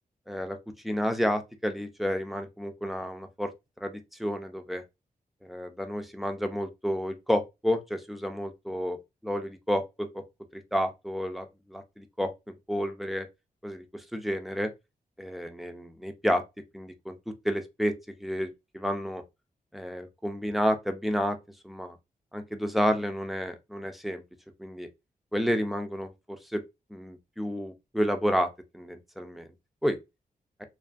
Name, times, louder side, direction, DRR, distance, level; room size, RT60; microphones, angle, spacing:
voice 1, 0.3-0.6 0.8-3.5 3.8-4.8 5.4-10.2 10.5-12.3 12.7-13.3 13.6-14.7 15.2-16.4 16.7-17.2 17.4-17.9 18.2-19.2 19.7-21.4 21.6-22.0 22.3-24.2 24.6-24.9 25.3-26.1 26.5-26.6 26.9-28.5 28.7-29.5 29.8-30.0, equal, ahead, 0.4 m, -30 dB
2.5 x 2.5 x 2.4 m
wide cardioid pair, 105°, 15 cm